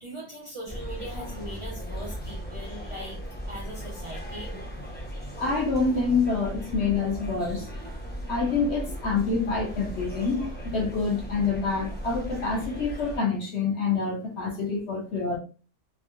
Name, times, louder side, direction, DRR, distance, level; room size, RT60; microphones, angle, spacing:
voice 1, 0.0-3.2 3.5-4.5, equal, 45° right, -5 dB, 0.4 m, -40 dB
sound 1, 0.7-13.2, equal, 10° left, 0.5 m, -37 dB
voice 2, 5.4-7.7 8.3-15.4, left 4 dB, 60° left, 0 dB, 0.8 m, -27 dB
3.5 x 2.1 x 2.4 m, 0.36 s
omnidirectional pair, 1.6 m